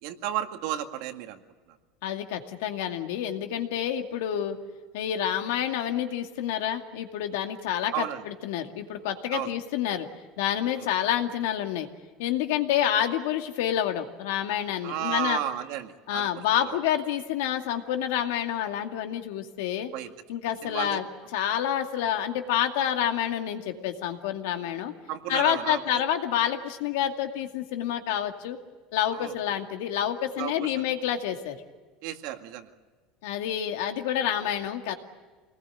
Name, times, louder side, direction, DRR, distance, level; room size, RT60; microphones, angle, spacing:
voice 1, 0.0-1.4 1.7-1.8 7.9-8.2 9.3-9.5 10.8-10.9 14.8-16.8 19.9-20.1 20.5-21.0 25.1-26.0 29.1-29.4 30.4-30.8 32.0-32.7, right 11 dB, 65° right, 6 dB, 1.9 m, -33 dB
voice 2, 2.0-4.6 4.9-10.1 10.4-11.9 12.2-15.4 16.1-19.9 20.3-21.0 21.3-24.9 25.3-28.6 28.9-31.6 33.2-35.0, left 10 dB, 90° left, 5 dB, 2.3 m, -28 dB
26.0 x 20.0 x 9.2 m, 1.4 s
cardioid pair, 155°, 0 cm